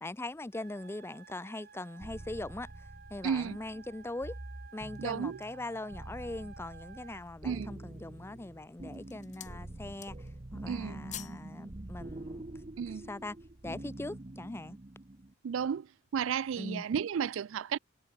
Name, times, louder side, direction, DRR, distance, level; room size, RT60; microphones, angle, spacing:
voice 1, 0.0-4.4 4.7-12.5 13.1-13.4 13.6-14.8 16.6-16.8, left 2 dB, 10° left, 0.5 m, -41 dB
sound 1, 0.5-7.2, right 5 dB, 50° right, 2.3 m, -54 dB
sound 2, 2.0-15.3, right 1 dB, 30° right, 0.9 m, -46 dB
voice 2, 3.2-3.6 5.0-5.4 7.4-7.7 10.7-11.0 12.8-13.1 15.4-15.9 16.1-17.8, right 7 dB, 75° right, 0.4 m, -33 dB
sound 3, 4.7-5.7 6.3-6.4 6.9-7.4 8.1-8.5 8.8-9.6 9.9-10.4 10.7-11.5 11.8-11.9, left 11 dB, 35° left, 1.2 m, -48 dB
head